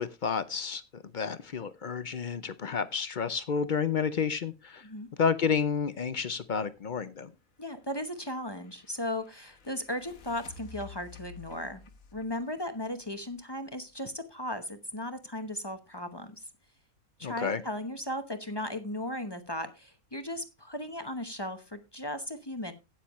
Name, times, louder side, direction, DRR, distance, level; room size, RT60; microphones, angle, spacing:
voice 1, 0.0-4.8 5.2-7.3 17.2-17.6, left 6 dB, 50° left, 13 dB, 0.6 m, -30 dB
voice 2, 7.6-11.8 12.1-16.4 17.2-22.7, left 1 dB, 20° left, 8 dB, 0.8 m, -36 dB
sound 1, 7.9-13.6, left 4 dB, 70° left, 1.5 m, -52 dB
13.0 x 9.4 x 3.0 m, 0.25 s
omnidirectional pair, 1.5 m